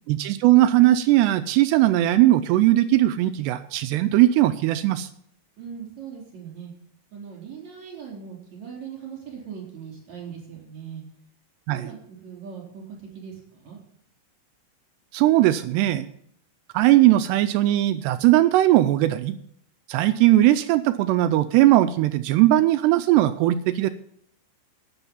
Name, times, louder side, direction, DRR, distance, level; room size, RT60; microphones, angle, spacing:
voice 1, 0.1-5.1 11.7-11.9 15.1-16.1 16.7-19.4 19.9-23.9, right 15 dB, 80° right, 11 dB, 2.5 m, -19 dB
voice 2, 5.6-6.7 7.1-11.0 11.7-13.8, right 7 dB, 40° right, -3 dB, 5.2 m, -40 dB
13.0 x 10.0 x 5.5 m, 0.67 s
omnidirectional pair, 5.3 m